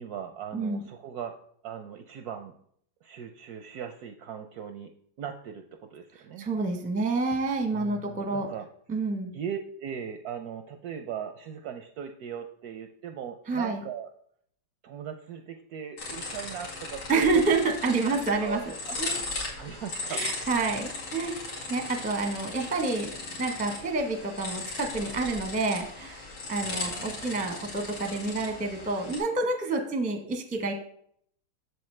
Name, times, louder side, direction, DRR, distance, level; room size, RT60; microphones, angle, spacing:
voice 1, 0.0-1.4 1.6-2.5 3.0-4.9 5.2-6.5 7.7-8.7 9.3-14.1 14.8-17.4 18.4-19.2 19.6-20.4 26.6-27.4, right 8 dB, 70° right, 7 dB, 0.9 m, -39 dB
voice 2, 6.4-8.5 8.9-9.3 13.5-13.8 17.1-18.6 19.0-19.1 20.1-21.4 21.7-23.1 23.4-26.2 26.5-30.7, right 3 dB, 10° right, 4 dB, 0.5 m, -28 dB
sound 1, 16.0-29.2, left 3 dB, 85° left, 3.1 m, -37 dB
7.9 x 7.0 x 3.2 m, 0.64 s
omnidirectional pair, 2.1 m